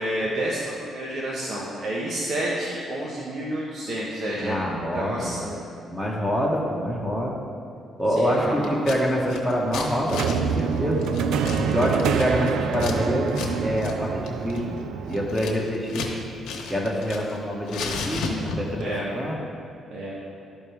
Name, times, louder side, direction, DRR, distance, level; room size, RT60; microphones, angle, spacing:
voice 1, 0.0-4.6 4.9-5.6 8.2-8.7 18.8-19.0 19.9-20.1, right 1 dB, 60° right, -6 dB, 1.3 m, -29 dB
voice 2, 4.4-5.4 5.9-7.4 8.0-11.0 11.6-16.1 16.7-18.3 18.5-19.4, equal, 10° right, -2 dB, 1.6 m, -26 dB
Scissors, 8.6-9.0 9.3-13.0 13.3-13.5 13.8-14.0 14.3-16.2 16.4-17.4 17.7-18.8, left 4 dB, 90° left, 0.9 m, -33 dB
sound 1, 10.1-15.3, right 6 dB, 80° right, 0.4 m, -26 dB
12.0 x 4.6 x 3.5 m, 2.5 s
cardioid pair, 90°, 0 cm